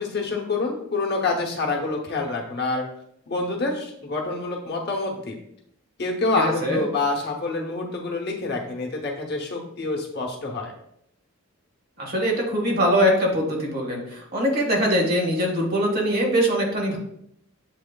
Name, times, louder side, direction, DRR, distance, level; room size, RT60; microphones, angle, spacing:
voice 1, 0.0-2.8 3.3-5.3 6.0-10.7, left 3 dB, 50° left, 0 dB, 0.8 m, -27 dB
voice 2, 12.0-17.0, equal, 45° right, -1 dB, 1.2 m, -22 dB
7.6 x 3.0 x 2.2 m, 0.73 s
head